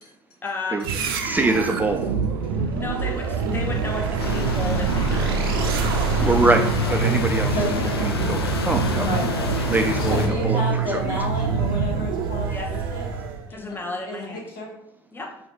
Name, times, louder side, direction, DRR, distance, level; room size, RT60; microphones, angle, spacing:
voice 1, 0.4-0.9 2.5-5.5 12.5-12.7 13.5-14.5 15.1-15.3, left 2 dB, 15° left, 0 dB, 0.8 m, -33 dB
sound 1, 0.8-13.5, right 5 dB, 70° right, 0.5 m, -25 dB
voice 2, 1.2-2.2 6.2-7.6 8.0-9.1 9.7-10.2 10.4-11.0, right 2 dB, 15° right, 4 dB, 0.3 m, -23 dB
sound 2, 4.2-10.3, left 3 dB, 85° left, 0.4 m, -28 dB
voice 3, 9.7-13.1 13.5-14.7, equal, 65° left, -3 dB, 1.3 m, -31 dB
3.1 x 2.7 x 4.3 m, 0.82 s
figure-of-eight pair, 60°, 13 cm